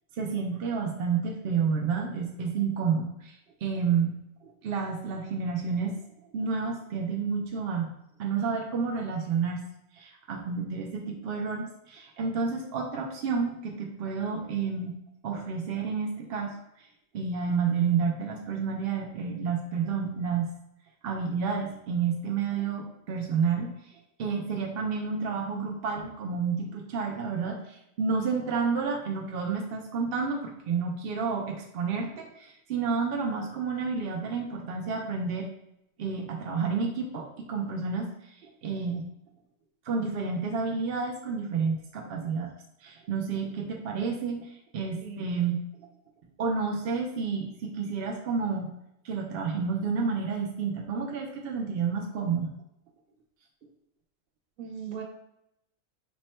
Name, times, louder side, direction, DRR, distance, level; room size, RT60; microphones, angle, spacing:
voice 1, 0.2-4.1 4.4-6.0 6.3-7.9 8.2-9.6 9.9-14.9 15.2-16.9 17.1-20.5 21.0-23.7 24.2-35.5 36.0-39.1 39.8-42.5 42.8-45.6 46.4-48.7 49.0-52.5, right 5 dB, 60° right, 0 dB, 0.6 m, -30 dB
voice 2, 45.0-45.5 54.6-55.0, right 6 dB, 85° right, 2 dB, 1.1 m, -39 dB
3.5 x 2.1 x 4.2 m, 0.78 s
omnidirectional pair, 1.4 m